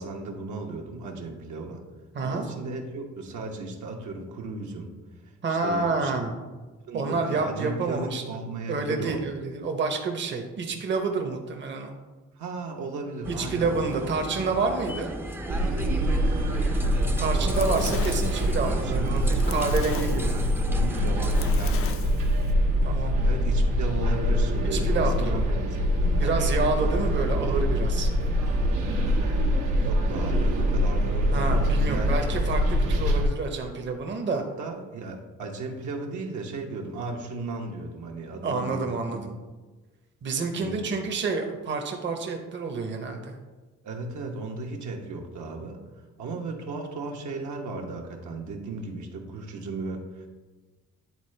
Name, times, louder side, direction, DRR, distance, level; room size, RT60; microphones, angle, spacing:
voice 1, 0.0-1.8 2.2-4.9 5.2-6.3 6.9-9.2 12.4-14.3 17.3-18.3 18.6-19.6 19.9-22.1 23.2-26.4 27.3-27.5 29.8-32.1 34.3-39.4 40.5-40.9 43.8-45.8 46.2-50.3, right 3 dB, 75° right, 1 dB, 1.1 m, -36 dB
voice 2, 2.1-2.5 5.4-6.4 6.9-8.2 8.7-12.0 13.4-15.1 17.2-20.3 22.8-23.1 24.7-25.4 26.2-28.1 31.3-34.4 38.4-39.3 40.2-43.4, right 4 dB, 40° right, 3 dB, 0.8 m, -28 dB
sound 1, 13.2-21.5, right 1 dB, 5° right, 0.5 m, -36 dB
sound 2, 15.5-33.3, equal, 90° right, 1.2 m, -24 dB
Fire, 17.0-22.5, left 8 dB, 50° left, 0.5 m, -39 dB
9.7 x 3.8 x 3.2 m, 1.3 s
cardioid pair, 90°, 30 cm